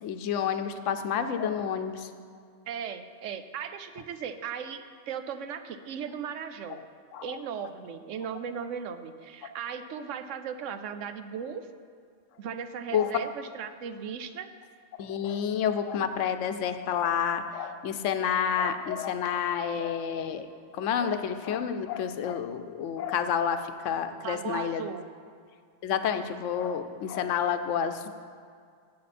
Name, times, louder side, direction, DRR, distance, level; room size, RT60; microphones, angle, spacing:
voice 1, 0.0-2.1 7.1-7.2 12.9-13.1 15.0-20.5 20.7-24.8 25.8-28.1, left 8 dB, 80° left, 9 dB, 1.0 m, -29 dB
voice 2, 2.7-6.8 7.2-11.7 12.4-14.5 24.2-25.0, right 7 dB, 80° right, 10 dB, 1.0 m, -37 dB
14.5 x 7.8 x 4.2 m, 2.2 s
omnidirectional pair, 1.3 m